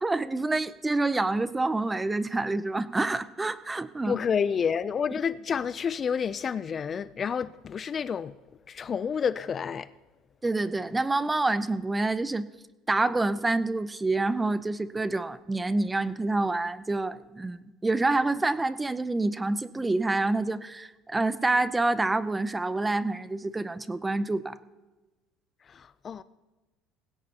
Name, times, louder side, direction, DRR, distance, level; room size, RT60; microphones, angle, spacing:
voice 1, 0.0-4.2 10.4-12.5 12.9-24.5, right 2 dB, 15° right, 0.6 m, -27 dB
voice 2, 4.0-8.3 8.7-9.9 25.7-26.2, left 7 dB, 35° left, 0.4 m, -29 dB
19.0 x 16.5 x 2.9 m
supercardioid pair, 115°, 0 cm